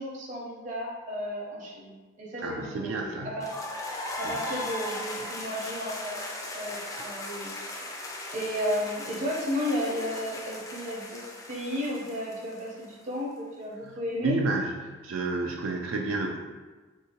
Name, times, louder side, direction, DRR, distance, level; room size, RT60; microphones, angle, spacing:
voice 1, 0.0-3.6 4.2-6.3 6.5-7.5 7.8-7.9 8.3-11.2 11.5-14.4, equal, 40° right, -4 dB, 0.6 m, -33 dB
voice 2, 2.4-3.4 7.0-7.1 13.8-14.0 14.2-14.7 15.0-16.4, right 2 dB, 90° right, 1 dB, 0.3 m, -30 dB
sound 1, 3.4-13.2, left 1 dB, 15° left, 0.3 m, -38 dB
3.5 x 2.7 x 2.8 m, 1.3 s
head